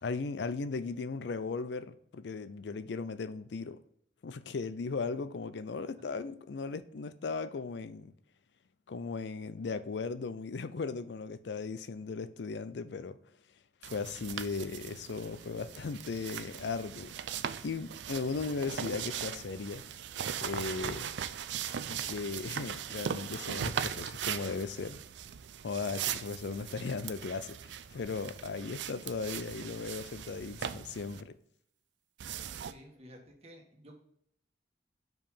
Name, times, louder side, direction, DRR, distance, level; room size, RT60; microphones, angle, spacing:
voice 1, 0.0-3.8 4.2-8.1 8.9-13.2 13.8-17.1 17.6-19.8 20.4-21.1 21.9-25.0 25.6-31.3, left 4 dB, 75° left, 0.5 m, -37 dB
sound 1, 13.8-31.2 32.2-32.7, right 8 dB, 85° right, 0.4 m, -39 dB
voice 2, 32.6-33.9, equal, 35° right, 1.3 m, -53 dB
5.2 x 4.7 x 5.6 m
head